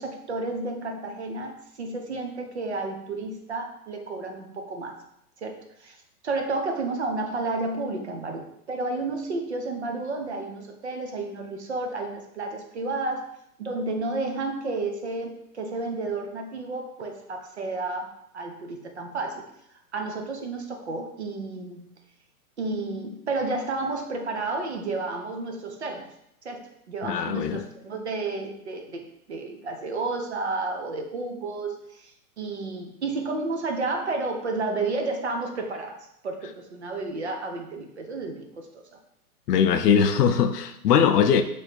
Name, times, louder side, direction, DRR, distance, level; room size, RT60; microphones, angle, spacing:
voice 1, 0.0-5.0 5.4-6.0 6.2-13.2 13.6-18.1 18.3-19.4 19.9-21.9 22.6-26.1 26.4-36.0 36.2-38.8, right 3 dB, 50° right, 3 dB, 0.5 m, -31 dB
voice 2, 27.0-27.6 39.5-41.4, left 7 dB, 85° left, 9 dB, 0.6 m, -21 dB
3.1 x 2.7 x 4.1 m, 0.78 s
hypercardioid pair, 180°, 46 cm